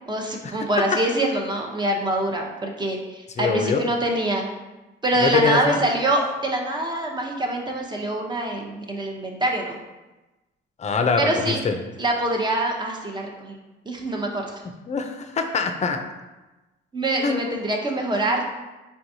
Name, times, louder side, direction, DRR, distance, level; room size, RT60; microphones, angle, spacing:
voice 1, 0.1-4.5 5.0-9.8 11.2-11.6 12.0-13.6 13.9-14.5 16.9-18.4, right 1 dB, 20° right, 1 dB, 0.7 m, -25 dB
voice 2, 3.4-3.8 5.2-5.8 10.8-11.8 14.9-16.0 17.2-17.5, left 4 dB, 35° left, 6 dB, 0.5 m, -23 dB
4.6 x 3.5 x 2.7 m, 1.1 s
cardioid pair, 90°, 20 cm